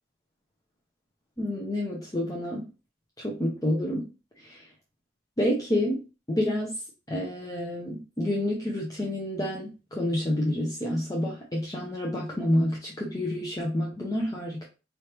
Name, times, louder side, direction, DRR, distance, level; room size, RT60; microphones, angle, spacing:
voice 1, 1.4-2.6 3.2-4.1 4.4-4.7 5.4-6.0 6.3-6.8 7.1-14.6, left 1 dB, 20° left, -2 dB, 0.7 m, -29 dB
4.7 x 3.3 x 3.0 m, 0.32 s
head